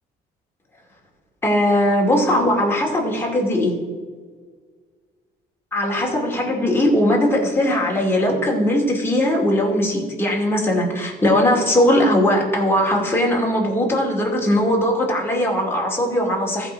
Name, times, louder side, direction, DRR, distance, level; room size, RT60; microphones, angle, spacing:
voice 1, 1.4-3.7 5.7-16.7, left 1 dB, 15° left, -2 dB, 2.4 m, -19 dB
14.5 x 4.9 x 4.6 m, 1.5 s
cardioid pair, 110°, 17 cm